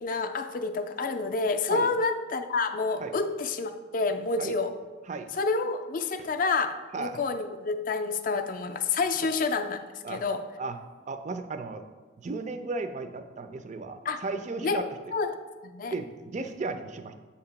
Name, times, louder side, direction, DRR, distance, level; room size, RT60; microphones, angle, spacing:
voice 1, 0.0-4.7 5.4-9.8 10.1-10.4 14.1-14.2 14.6-14.8 15.1-15.3 15.6-15.9, left 4 dB, 45° left, 8 dB, 0.4 m, -28 dB
voice 2, 5.1-5.4 6.2-6.3 6.9-7.2 9.2-9.3 10.0-10.2 10.6-10.8 11.1-11.8 12.2-14.8 15.9-17.1, right 3 dB, 35° right, 8 dB, 0.4 m, -35 dB
7.8 x 2.9 x 5.7 m, 1.3 s
head